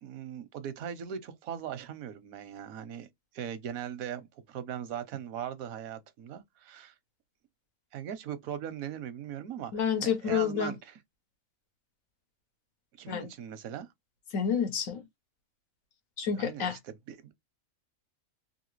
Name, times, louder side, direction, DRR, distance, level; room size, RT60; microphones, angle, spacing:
voice 1, 0.0-3.1 3.3-6.9 7.9-11.0 13.0-13.9 16.4-17.3, right 9 dB, 85° right, 1.1 m, -39 dB
voice 2, 9.7-10.7 13.1-13.3 14.3-15.0 16.2-16.8, left 7 dB, 75° left, 1.3 m, -29 dB
3.2 x 2.6 x 3.0 m
omnidirectional pair, 1.4 m